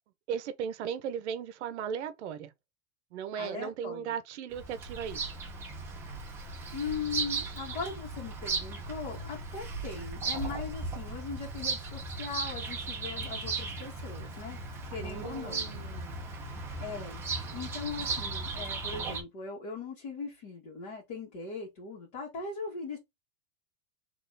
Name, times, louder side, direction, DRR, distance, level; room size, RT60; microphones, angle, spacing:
voice 1, 0.3-2.5 3.1-5.4 15.0-16.2, right 8 dB, 55° right, 0.8 m, -37 dB
voice 2, 3.4-4.2 6.7-14.6 14.9-15.7 16.8-17.2 17.5-23.0, left 4 dB, 40° left, 2.0 m, -39 dB
Bird vocalization bird call bird song, 4.5-19.2, right 3 dB, 5° right, 0.5 m, -37 dB
4.2 x 3.0 x 3.9 m
supercardioid pair, 160°, 41 cm